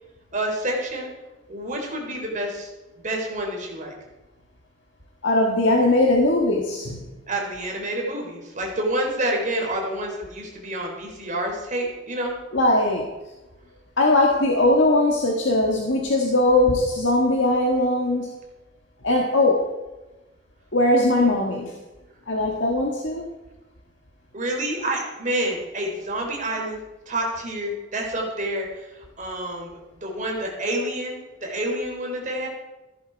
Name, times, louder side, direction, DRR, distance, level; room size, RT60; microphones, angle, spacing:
voice 1, 0.3-1.1 1.5-2.7 3.0-3.9 7.3-12.4 24.3-26.8 27.1-28.9 29.2-29.7 30.0-32.5, right 1 dB, 40° right, 0 dB, 3.7 m, -28 dB
voice 2, 5.2-7.1 12.5-13.1 14.0-18.3 19.0-19.6 20.7-21.7 22.3-23.3, left 2 dB, 70° left, 0 dB, 1.7 m, -20 dB
15.0 x 10.5 x 4.6 m, 1.1 s
head